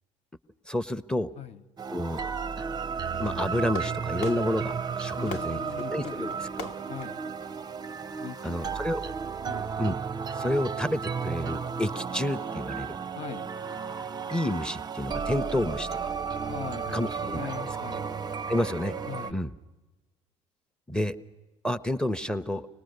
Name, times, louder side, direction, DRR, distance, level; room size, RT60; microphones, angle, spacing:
voice 1, 0.7-1.3 1.9-2.2 3.2-5.6 5.9-6.3 6.6-6.7 8.4-9.0 9.8-9.9 10.4-13.0 14.3-15.9 16.9-17.4 18.5-18.9 19.3-19.5 20.9-21.2 21.6-22.7, left 1 dB, 5° left, 14 dB, 0.8 m, -29 dB
sound 1, 1.8-19.3, right 6 dB, 25° right, 0.6 m, -33 dB
Fireworks, 3.1-8.1, left 4 dB, 65° left, 1.4 m, -43 dB
voice 2, 5.1-6.3 6.6-7.2 8.2-8.8 9.4-9.7 13.2-13.5 16.5-18.1 19.1-19.4, left 9 dB, 40° left, 12 dB, 0.9 m, -41 dB
25.0 x 20.0 x 6.6 m, 1.2 s
figure-of-eight pair, 60°, 16 cm